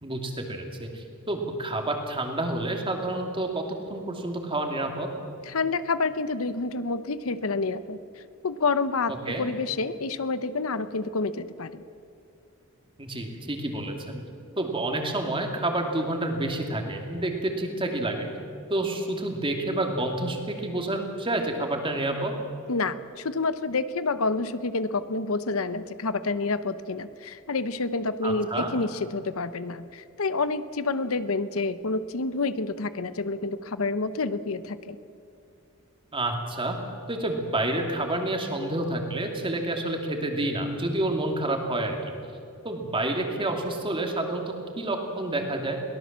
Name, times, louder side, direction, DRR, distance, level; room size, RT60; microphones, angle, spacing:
voice 1, 0.0-3.6 3.9-5.1 9.3-9.5 13.0-14.2 14.6-18.3 18.7-22.3 28.2-28.7 36.1-36.8 37.1-42.0 42.6-45.8, right 1 dB, 25° right, 3 dB, 2.7 m, -29 dB
voice 2, 5.4-11.8 22.7-35.0, left 3 dB, 70° left, 13 dB, 0.8 m, -28 dB
22.5 x 18.0 x 7.4 m, 2.5 s
head